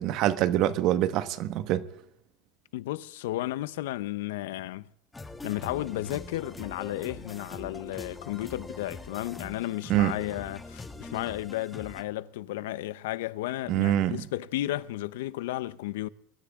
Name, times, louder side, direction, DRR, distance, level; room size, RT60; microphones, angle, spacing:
voice 1, 0.0-1.9 9.9-10.1 13.7-14.3, right 13 dB, 50° right, 1.4 m, -25 dB
voice 2, 2.7-4.9 5.4-16.1, left 15 dB, 90° left, 0.7 m, -33 dB
sound 1, 5.1-12.0, left 3 dB, 10° left, 1.5 m, -43 dB
23.5 x 14.0 x 3.7 m
supercardioid pair, 145°, 0 cm